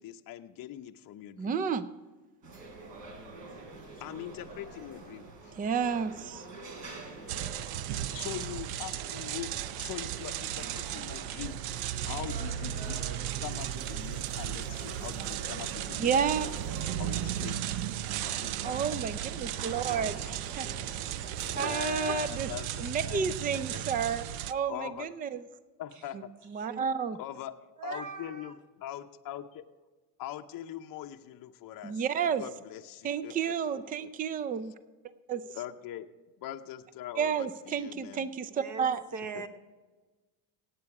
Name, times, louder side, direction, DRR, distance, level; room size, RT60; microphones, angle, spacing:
voice 1, 0.0-1.6 4.0-5.5 8.1-9.5 9.8-11.6 12.0-16.6 17.0-17.9 18.4-18.7 20.1-20.4 20.9-23.8 24.7-25.1 25.8-26.2 27.2-27.5 27.8-29.6 30.2-32.0 32.4-34.1 35.5-36.1 36.4-38.3 39.3-39.4, left 12 dB, 45° left, 7 dB, 0.7 m, -42 dB
voice 2, 1.4-1.9 5.6-6.4 16.0-16.5 18.6-20.7 21.6-22.5 22.8-25.4 26.5-27.2 31.8-32.4 33.0-34.7 35.3-35.4 37.2-39.0, right 7 dB, 20° right, 14 dB, 0.4 m, -31 dB
sound 1, 2.4-21.7, right 2 dB, 60° right, 3.9 m, -46 dB
sound 2, 7.3-24.5, right 12 dB, 75° right, 0.7 m, -35 dB
voice 3, 25.9-26.2 26.6-26.8 27.8-28.6 38.4-39.5, right 5 dB, 35° right, 9 dB, 1.2 m, -41 dB
17.0 x 8.2 x 4.8 m, 1.3 s
cardioid pair, 110°, 48 cm